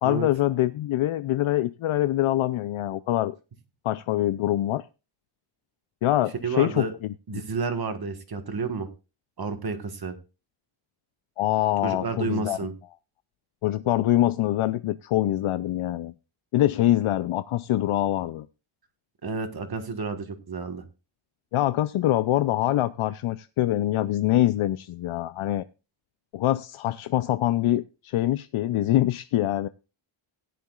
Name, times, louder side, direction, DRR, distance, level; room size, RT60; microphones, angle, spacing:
voice 1, 0.0-3.3 3.8-4.8 6.0-7.4 11.4-12.6 13.6-16.1 16.5-18.5 21.5-25.6 26.3-29.7, left 14 dB, 80° left, 13 dB, 0.6 m, -24 dB
voice 2, 6.4-6.9 7.3-8.9 9.4-10.1 11.8-12.7 19.2-20.8, right 4 dB, 50° right, 7 dB, 1.5 m, -30 dB
16.5 x 10.5 x 2.4 m, 0.31 s
wide cardioid pair, 165°, 49 cm